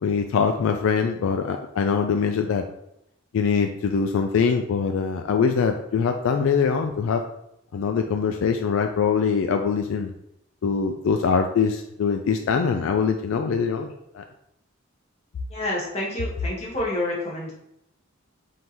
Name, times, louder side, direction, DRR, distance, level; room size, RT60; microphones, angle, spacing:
voice 1, 0.0-2.6 3.3-7.2 7.7-10.1 10.6-14.2, left 6 dB, 75° left, 5 dB, 0.3 m, -23 dB
voice 2, 15.5-17.5, left 1 dB, 30° left, -4 dB, 1.4 m, -28 dB
3.7 x 2.6 x 4.4 m, 0.79 s
head